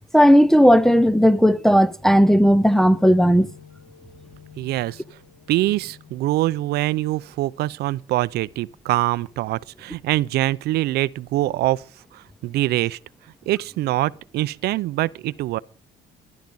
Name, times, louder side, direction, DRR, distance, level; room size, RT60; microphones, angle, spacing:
voice 1, 0.1-3.5, equal, ahead, 0.5 m, -15 dB
sound 1, 2.8-10.1, left 8 dB, 90° left, 3.0 m, -51 dB
voice 2, 4.6-5.0 5.5-11.8 12.1-13.0 13.5-15.6, right 16 dB, 75° right, 0.5 m, -24 dB
13.0 x 11.5 x 5.3 m
cardioid pair, 110°, 17 cm